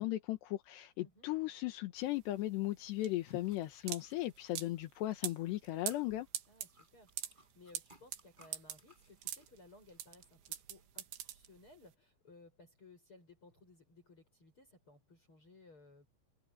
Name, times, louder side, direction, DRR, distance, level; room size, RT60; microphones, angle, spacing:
voice 1, 0.0-6.3, left 16 dB, 80° left, 3.5 m, -37 dB
sound 1, 2.0-11.9, right 11 dB, 85° right, 3.8 m, -45 dB
sound 2, 3.2-5.3 5.6-10.9, right 1 dB, 10° right, 8.0 m, -67 dB
voice 2, 6.5-16.1, left 2 dB, 30° left, 8.7 m, -61 dB
omnidirectional pair, 4.9 m